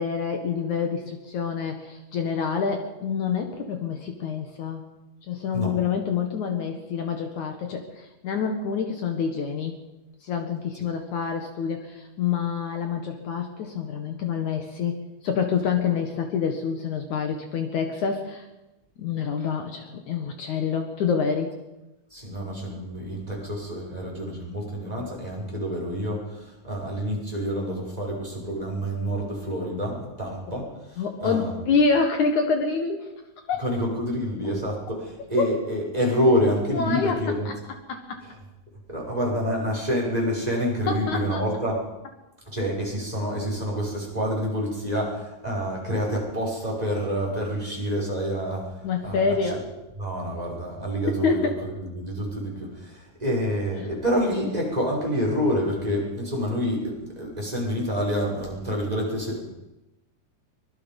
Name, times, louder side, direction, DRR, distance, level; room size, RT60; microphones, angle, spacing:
voice 1, 0.0-4.8 5.3-9.8 10.2-14.9 15.2-18.5 19.0-21.6 31.0-33.1 33.5-33.6 35.4-35.5 36.7-37.2 37.5-37.6 37.9-38.2 40.9-41.5 48.8-49.6 51.2-51.6, left 5 dB, 65° left, 5 dB, 2.9 m, -27 dB
voice 2, 22.1-31.7 33.6-37.5 38.9-41.8 42.5-49.4 50.0-59.5, equal, 10° right, -1 dB, 6.2 m, -27 dB
24.0 x 22.5 x 5.4 m, 0.96 s
omnidirectional pair, 3.9 m